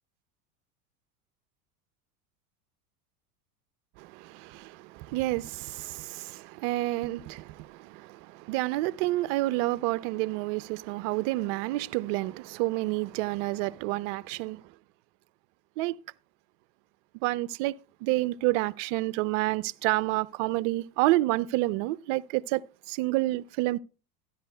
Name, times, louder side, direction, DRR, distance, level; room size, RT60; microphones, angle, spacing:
voice 1, 4.0-14.6 15.8-16.0 17.2-22.6 22.9-23.8, right 19 dB, 50° right, 0.5 m, -29 dB
13.0 x 11.0 x 2.2 m
hypercardioid pair, 85°, 48 cm